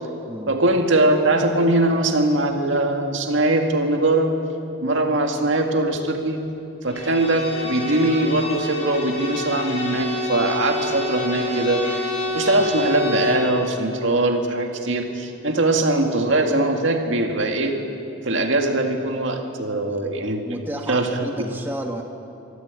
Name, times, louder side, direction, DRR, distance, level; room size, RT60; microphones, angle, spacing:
voice 1, 0.5-4.3 4.8-6.4 6.8-11.8 12.3-17.8 18.2-20.6 20.9-21.5, right 2 dB, 75° right, 3 dB, 2.0 m, -21 dB
Bowed string instrument, 6.9-13.5, left 2 dB, 30° left, 5.1 m, -28 dB
voice 2, 20.4-22.0, right 1 dB, 10° right, 2 dB, 1.3 m, -32 dB
25.5 x 13.5 x 8.2 m, 2.7 s
head